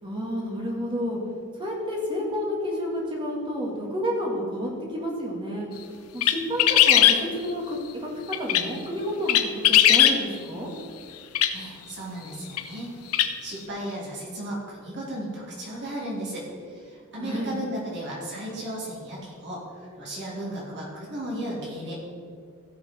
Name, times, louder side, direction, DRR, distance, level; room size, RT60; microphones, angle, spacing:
voice 1, 0.0-1.2 1.5-5.7 6.1-8.1 8.4-10.7 17.2-17.6, equal, 25° right, -2 dB, 2.2 m, -30 dB
sound 1, 6.2-7.2 8.3-8.6 9.3-10.2 11.3-11.5 12.6-12.7 13.1-13.3, left 11 dB, 90° left, 0.7 m, -18 dB
voice 2, 11.5-16.4 16.7-19.6 20.0-22.0, right 1 dB, 55° right, -5 dB, 3.1 m, -35 dB
16.0 x 6.6 x 4.5 m, 2.2 s
head